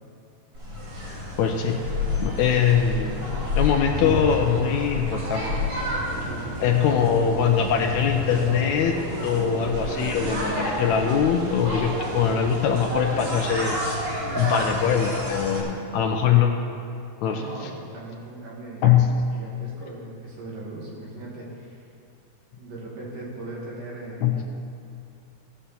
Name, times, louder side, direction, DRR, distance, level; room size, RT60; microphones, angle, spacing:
sound 1, 0.5-15.6, left 1 dB, 45° right, 3.4 m, -30 dB
voice 1, 1.4-1.8 2.2-3.2 3.6-5.4 6.6-9.0 9.2-13.8 14.4-16.6 17.2-17.4 18.8-19.2 24.2-24.4, left 8 dB, 75° left, 3 dB, 1.8 m, -22 dB
sound 2, 4.5-13.6, right 7 dB, 90° right, 2.4 m, -41 dB
voice 2, 6.2-6.8 17.2-18.9 19.3-21.9 22.6-24.4, right 2 dB, 75° right, -5 dB, 4.2 m, -39 dB
17.5 x 5.9 x 6.9 m, 2.4 s
omnidirectional pair, 3.7 m